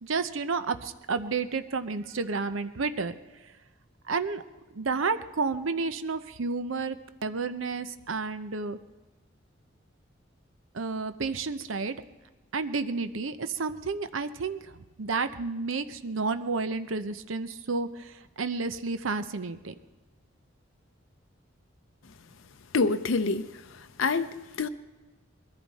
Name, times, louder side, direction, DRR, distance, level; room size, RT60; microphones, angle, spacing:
voice 1, 0.0-3.2 4.1-4.4 4.7-7.0 7.2-8.8 10.7-11.9 12.5-14.6 15.0-19.7, right 4 dB, 80° right, 0.7 m, -31 dB
voice 2, 22.7-24.7, left 4 dB, 80° left, 0.7 m, -27 dB
21.5 x 14.0 x 4.2 m
head